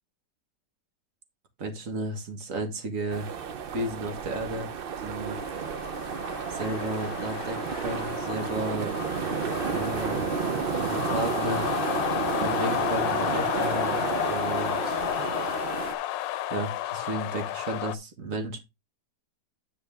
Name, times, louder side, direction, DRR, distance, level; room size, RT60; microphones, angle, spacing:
voice 1, 1.6-3.3 3.7-4.7 5.0-5.4 6.5-8.9 9.7-10.5 10.8-11.6 12.3-15.0 16.5-18.6, right 2 dB, 50° right, 6 dB, 1.9 m, -33 dB
sound 1, 3.1-15.9, right 7 dB, 75° right, 0.5 m, -31 dB
sound 2, 5.3-18.0, left 13 dB, 85° left, 1.3 m, -32 dB
9.6 x 5.2 x 3.4 m, 0.23 s
omnidirectional pair, 1.9 m